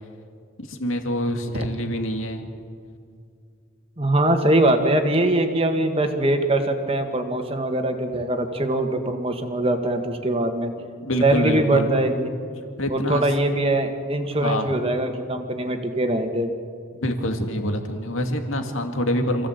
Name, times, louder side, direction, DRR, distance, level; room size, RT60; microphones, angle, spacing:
voice 1, 0.6-2.5 11.0-11.9 12.8-13.3 14.2-14.8 17.0-19.5, equal, 75° left, 5 dB, 2.3 m, -26 dB
voice 2, 4.0-10.7 11.2-12.3 12.9-16.5, right 1 dB, 25° right, 5 dB, 1.8 m, -22 dB
27.5 x 16.0 x 8.2 m, 2.3 s
head